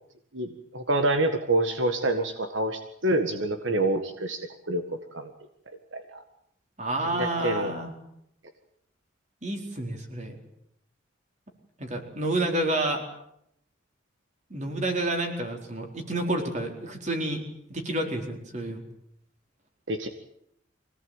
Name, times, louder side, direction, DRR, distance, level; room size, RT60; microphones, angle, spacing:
voice 1, 0.3-4.8 5.1-5.3 5.9-6.2 7.1-7.7 19.9-20.1, right 1 dB, 70° right, 7 dB, 1.8 m, -27 dB
voice 2, 6.8-7.9 9.4-10.4 11.8-13.0 14.5-17.4 17.7-18.8, right 1 dB, 35° right, 3 dB, 4.3 m, -29 dB
24.5 x 18.0 x 9.1 m, 0.75 s
head